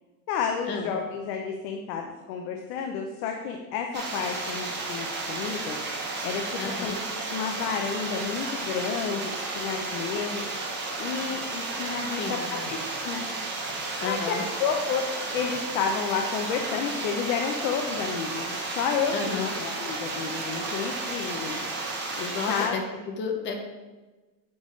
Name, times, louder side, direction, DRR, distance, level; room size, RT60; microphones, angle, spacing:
voice 1, 0.3-7.0 7.3-12.8 13.0-13.2 14.1-15.1 15.3-21.6 22.2-22.8, left 6 dB, 60° left, 3 dB, 0.8 m, -31 dB
sound 1, 3.9-22.7, right 3 dB, 20° right, 0.9 m, -33 dB
voice 2, 6.6-7.0 12.2-12.7 14.0-14.5 19.1-19.5 22.3-23.6, left 5 dB, 25° left, 4 dB, 0.5 m, -32 dB
9.4 x 3.6 x 3.1 m, 1.2 s
supercardioid pair, 160°, 49 cm